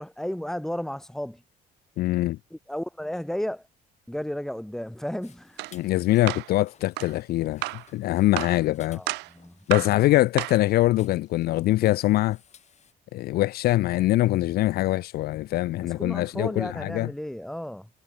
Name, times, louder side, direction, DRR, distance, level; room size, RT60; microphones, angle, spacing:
voice 1, 0.0-1.4 2.5-3.7 4.1-5.6 8.9-10.1 16.0-17.9, equal, ahead, 2.6 m, -34 dB
voice 2, 2.0-2.4 5.7-9.0 9.7-12.4 13.1-17.1, left 16 dB, 65° left, 0.4 m, -23 dB
sound 1, 5.2-12.9, left 7 dB, 40° left, 7.3 m, -58 dB
sound 2, 5.6-5.8 6.3-6.5 7.0-7.1 7.6-7.9 8.4-8.6 9.1-9.3 9.7-10.0 10.4-10.7, right 21 dB, 90° right, 2.6 m, -31 dB
cardioid pair, 110°, 17 cm